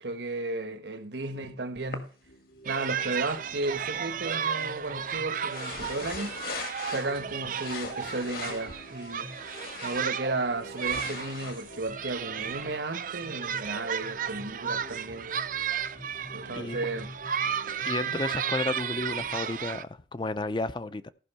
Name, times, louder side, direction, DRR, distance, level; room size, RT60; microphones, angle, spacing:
voice 1, 0.0-2.1 2.6-6.3 6.8-9.3 9.8-15.3 16.3-17.1 18.1-18.2, right 2 dB, 75° right, 1.3 m, -34 dB
sound 1, 1.2-19.4, equal, 85° left, 2.6 m, -48 dB
sound 2, 1.9-2.0 5.4-7.2 7.5-10.2 10.6-12.8, left 4 dB, 55° left, 1.5 m, -41 dB
sound 3, 2.6-19.8, right 8 dB, 50° right, 0.5 m, -34 dB
voice 2, 17.8-21.1, left 2 dB, 25° left, 0.5 m, -32 dB
14.5 x 5.4 x 5.5 m
head